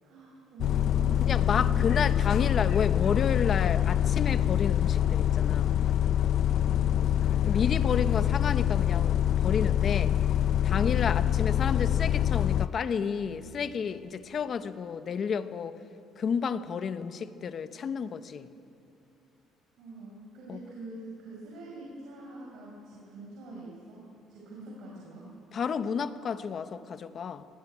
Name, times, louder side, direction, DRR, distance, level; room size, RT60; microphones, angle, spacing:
voice 1, 0.0-2.6 6.6-7.3 10.7-11.1 19.8-25.3, right 3 dB, 65° right, 5.3 m, -44 dB
Bus, 0.6-12.7, left 10 dB, 55° left, 0.5 m, -25 dB
voice 2, 1.3-5.8 7.4-10.2 10.6-15.8 16.2-18.5 20.5-20.6 25.5-27.5, left 6 dB, 40° left, 1.0 m, -31 dB
22.0 x 18.5 x 10.0 m
cardioid pair, 140°, 0 cm